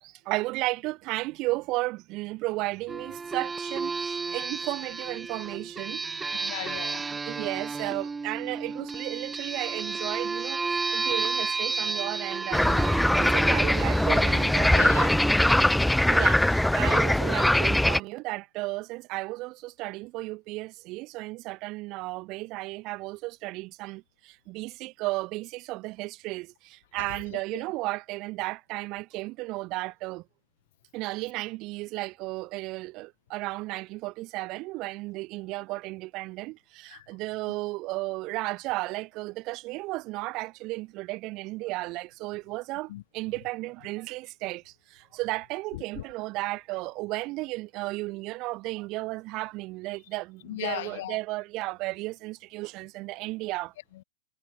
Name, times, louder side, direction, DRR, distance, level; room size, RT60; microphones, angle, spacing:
voice 1, 0.0-6.2 7.3-15.1 16.1-30.2 30.9-53.7, right 21 dB, 45° right, 4.1 m, -34 dB
sound 1, 2.9-16.1, right 4 dB, 15° right, 5.1 m, -32 dB
voice 2, 6.4-7.1 14.7-15.1 15.5-16.4 26.9-27.6 36.9-37.1 42.9-43.0 45.7-46.0 50.4-51.2 53.9-54.0, left 16 dB, 60° left, 4.3 m, -38 dB
sound 2, 12.5-18.0, left 1 dB, 5° left, 1.7 m, -22 dB
hypercardioid pair, 105°, 0 cm